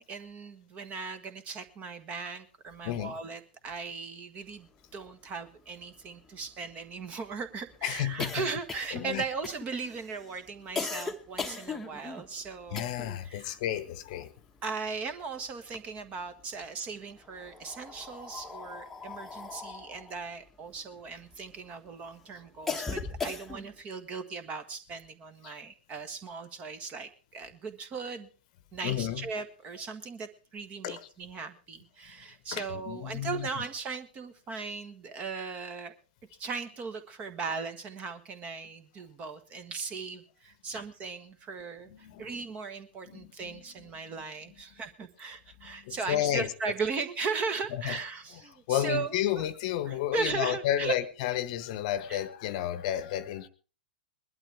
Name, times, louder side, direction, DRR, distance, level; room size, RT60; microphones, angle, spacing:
voice 1, 0.0-13.0 13.2-13.6 14.6-28.3 28.7-35.9 36.4-49.5 49.9-50.9 52.1-52.2, right 5 dB, 25° right, 1.5 m, -38 dB
sound 1, 5.1-5.2 5.4-5.5 5.8-13.3 13.6-15.1 15.5-16.4 17.2-21.7 22.1-23.8, left 4 dB, 5° left, 1.2 m, -39 dB
voice 2, 7.8-8.4 8.9-9.2 12.7-14.3 25.4-25.6 28.8-29.3 30.8-31.0 32.5-33.5 40.7-40.8 41.9-42.3 43.1-43.6 45.6-46.5 47.8-48.0 48.7-53.5, left 12 dB, 45° left, 1.0 m, -32 dB
21.0 x 12.0 x 3.5 m
figure-of-eight pair, 105°, 5 cm